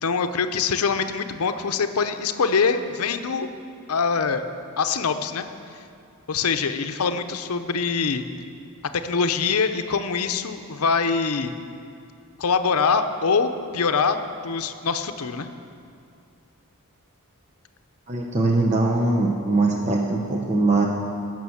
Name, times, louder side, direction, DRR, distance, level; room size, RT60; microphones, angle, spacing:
voice 1, 0.0-3.5 3.9-4.4 4.8-5.5 6.3-8.2 8.9-11.5 12.4-15.5, left 5 dB, 75° left, 8 dB, 0.7 m, -24 dB
voice 2, 18.1-20.9, right 2 dB, 30° right, 0 dB, 0.8 m, -21 dB
17.5 x 6.2 x 7.2 m, 2.5 s
head